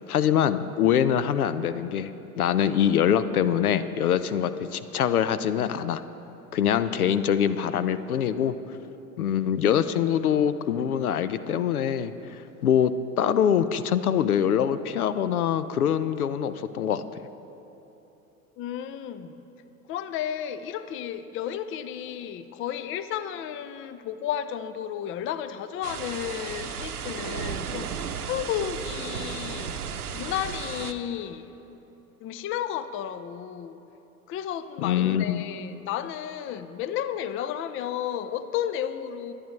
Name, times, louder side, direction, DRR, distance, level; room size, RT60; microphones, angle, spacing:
voice 1, 0.1-2.1 2.4-6.0 6.5-8.8 9.2-17.0 34.8-35.4, left 9 dB, 80° left, 13 dB, 0.6 m, -24 dB
voice 2, 18.6-19.4 19.9-27.9 28.3-29.8 30.1-31.5 32.2-33.8 34.3-39.3, left 10 dB, 30° left, 12 dB, 0.6 m, -32 dB
sound 1, 25.8-30.9, right 7 dB, 85° right, 0.7 m, -34 dB
23.5 x 9.8 x 3.2 m, 3.0 s
figure-of-eight pair, 80°, 44 cm